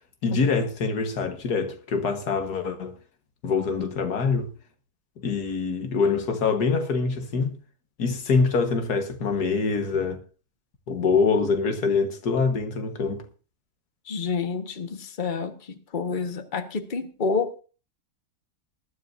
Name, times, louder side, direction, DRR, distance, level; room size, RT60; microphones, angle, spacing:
voice 1, 0.2-2.9 3.4-4.5 5.2-7.6 8.0-10.2 10.9-13.2, left 4 dB, 85° left, 2.0 m, -24 dB
voice 2, 14.1-15.5 15.9-17.6, left 4 dB, 35° left, 1.4 m, -28 dB
19.5 x 12.5 x 2.6 m
omnidirectional pair, 1.6 m